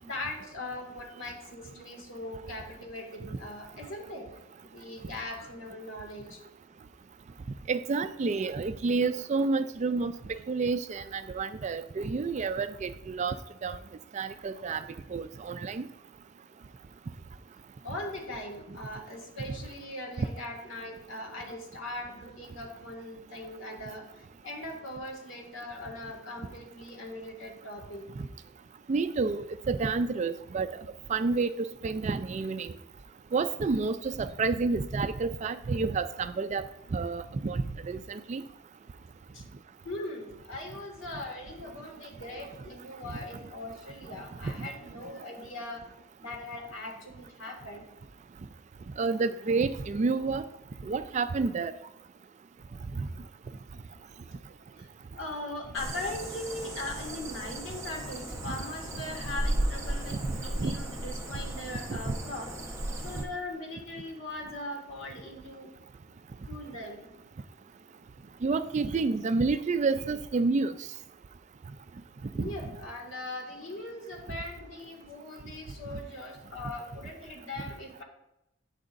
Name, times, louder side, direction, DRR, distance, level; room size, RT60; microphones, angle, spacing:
voice 1, 0.0-6.4 10.3-10.4 17.8-28.1 39.3-39.4 39.8-45.9 46.2-47.8 52.7-52.8 54.3-54.9 55.2-62.5 63.0-65.7 66.5-67.1 72.3-78.0, left 2 dB, 80° left, 1 dB, 2.0 m, -40 dB
voice 2, 7.7-10.1 10.5-13.4 13.6-13.8 14.1-14.8 15.1-15.9 28.9-30.7 31.1-32.7 33.3-36.6 36.9-38.4 44.6-44.7 49.0-50.5 50.9-51.7 58.5-58.6 60.6-60.7 61.9-62.1 68.4-70.7 72.4-72.5, right 4 dB, 35° right, 11 dB, 0.3 m, -29 dB
sound 1, 55.7-63.2, right 1 dB, 15° right, 1.0 m, -35 dB
10.5 x 8.7 x 2.6 m, 0.89 s
head